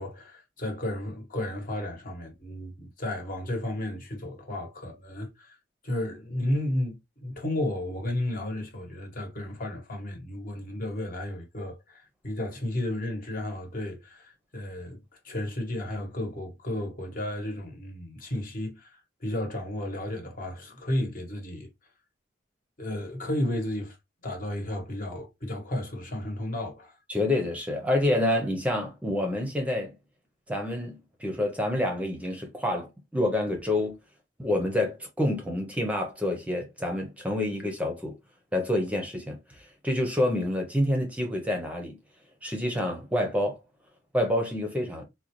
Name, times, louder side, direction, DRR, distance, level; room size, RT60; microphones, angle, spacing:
voice 1, 0.0-5.6 5.8-15.0 15.2-21.7 22.8-24.0 24.2-27.0, left 1 dB, 45° left, 1.1 m, -33 dB
voice 2, 27.1-29.9 30.5-34.0 34.4-38.2 38.5-39.4 39.8-42.0 42.4-43.6 44.1-45.0, left 1 dB, 5° right, 0.6 m, -28 dB
3.8 x 2.2 x 2.9 m
head